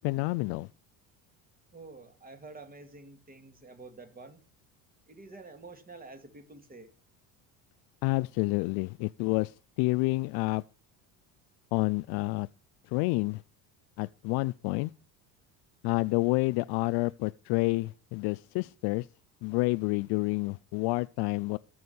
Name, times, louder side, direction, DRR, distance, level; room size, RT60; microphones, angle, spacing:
voice 1, 0.0-0.7 8.0-10.6 11.7-12.5 12.9-13.4 14.0-14.9 15.8-19.1 19.4-21.6, left 23 dB, 70° left, 0.5 m, -29 dB
voice 2, 1.7-4.4 5.1-6.9, right 3 dB, 20° right, 2.6 m, -48 dB
14.0 x 6.4 x 7.0 m
supercardioid pair, 110°, 41 cm